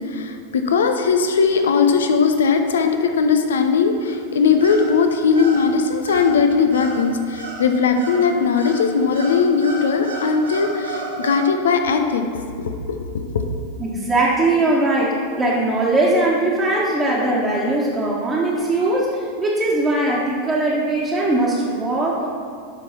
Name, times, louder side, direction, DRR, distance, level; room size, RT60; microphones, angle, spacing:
voice 1, 0.1-12.2 12.6-13.0 13.3-13.5, left 5 dB, 65° left, 6 dB, 0.8 m, -19 dB
sound 1, 4.0-11.4, right 1 dB, 75° right, 1.7 m, -33 dB
voice 2, 13.8-22.3, right 2 dB, 15° right, -7 dB, 1.5 m, -20 dB
8.6 x 6.1 x 5.8 m, 2.2 s
figure-of-eight pair, 90°, 0 cm